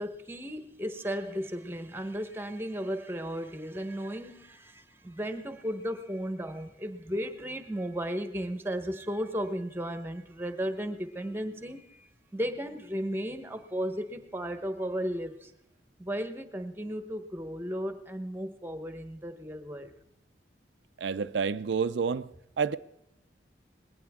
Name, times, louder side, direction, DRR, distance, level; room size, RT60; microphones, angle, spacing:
voice 1, 0.0-15.5 16.0-19.9, equal, 15° right, 1.1 m, -35 dB
voice 2, 21.0-22.3 22.6-22.8, right 5 dB, 90° right, 0.5 m, -29 dB
20.0 x 17.5 x 3.6 m
head